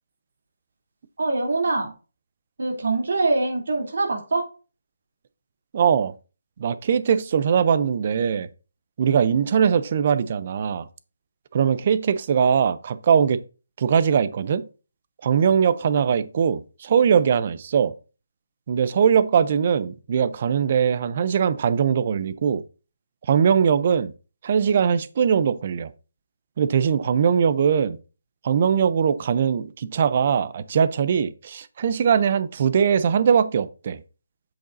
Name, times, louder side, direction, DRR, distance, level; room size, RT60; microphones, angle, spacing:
voice 1, 1.2-1.9 2.6-4.4, right 3 dB, 65° right, 3.0 m, -23 dB
voice 2, 5.7-6.1 6.6-8.5 9.0-10.9 11.5-13.4 13.8-14.7 15.2-17.9 18.7-22.6 23.3-24.1 24.4-25.9 26.6-28.0 28.4-34.0, right 7 dB, 35° right, 0.5 m, -21 dB
7.8 x 7.0 x 2.6 m
hypercardioid pair, 165°, 0 cm